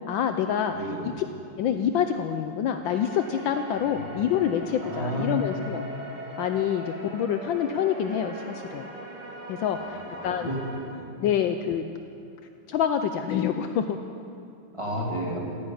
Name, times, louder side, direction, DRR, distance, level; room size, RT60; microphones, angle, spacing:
voice 1, 0.1-0.7 1.2-1.3 1.6-5.8 6.4-8.9 9.5-10.0 10.2-10.5 11.2-11.8 12.7-14.0, left 9 dB, 75° left, 7 dB, 1.3 m, -26 dB
voice 2, 0.7-1.1 3.7-4.2 4.8-5.7 9.7-11.3 14.7-15.4, equal, 15° right, -3 dB, 2.3 m, -33 dB
sound 1, 2.8-10.8, right 1 dB, 85° right, 3.7 m, -41 dB
14.5 x 10.0 x 8.8 m, 2.6 s
omnidirectional pair, 2.4 m